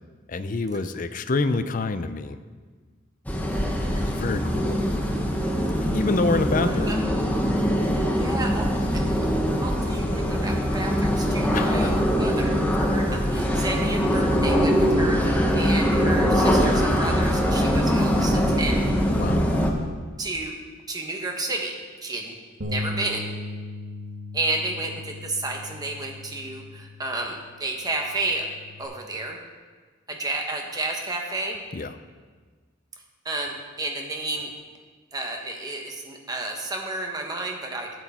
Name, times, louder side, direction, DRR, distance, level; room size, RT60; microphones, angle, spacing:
voice 1, 0.3-2.4 3.9-4.8 5.9-6.9 11.5-12.0 19.1-19.4 31.7-31.9, left 3 dB, 40° left, 11 dB, 0.5 m, -27 dB
sound 1, 3.3-19.7, equal, 10° left, 0.9 m, -22 dB
voice 2, 6.6-7.0 8.1-9.3 9.6-18.9 20.2-20.5 20.9-22.3 22.6-23.2 24.3-28.5 28.8-29.4 30.1-31.6 33.2-34.5 35.1-37.9, right 2 dB, 20° right, 1 dB, 1.2 m, -31 dB
Bass guitar, 22.6-28.9, left 2 dB, 60° right, 1.3 m, -37 dB
12.5 x 8.0 x 4.3 m, 1.5 s
head